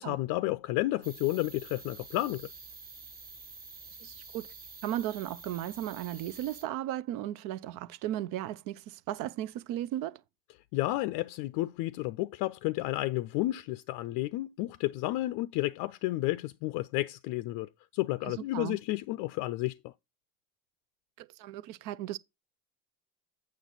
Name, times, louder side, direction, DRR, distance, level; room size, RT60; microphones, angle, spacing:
voice 1, 0.0-2.5 10.7-19.9, left 18 dB, 45° left, 0.6 m, -31 dB
sound 1, 1.0-6.6, right 4 dB, 20° right, 1.3 m, -48 dB
voice 2, 4.0-4.5 4.8-10.2 18.2-18.8 21.2-22.2, right 13 dB, 45° right, 0.7 m, -36 dB
8.7 x 6.2 x 3.9 m
hypercardioid pair, 75°, 46 cm